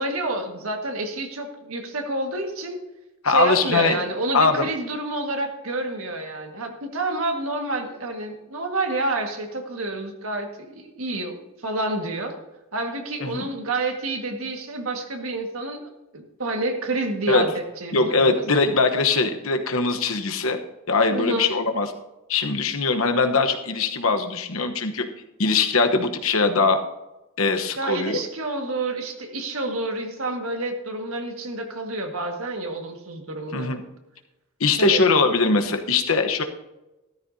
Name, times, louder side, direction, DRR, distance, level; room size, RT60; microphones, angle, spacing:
voice 1, 0.0-2.8 3.3-12.4 12.7-15.8 16.1-18.6 21.1-21.5 27.8-33.8 34.8-35.0, right 2 dB, 85° right, 3 dB, 1.8 m, -29 dB
voice 2, 3.2-4.0 4.3-4.6 13.2-13.5 17.3-17.4 17.9-20.6 20.9-21.9 22.3-25.1 25.4-26.8 27.4-28.2 33.5-33.8 34.6-36.4, left 4 dB, 80° left, 6 dB, 1.1 m, -21 dB
13.5 x 13.5 x 2.8 m, 1.0 s
head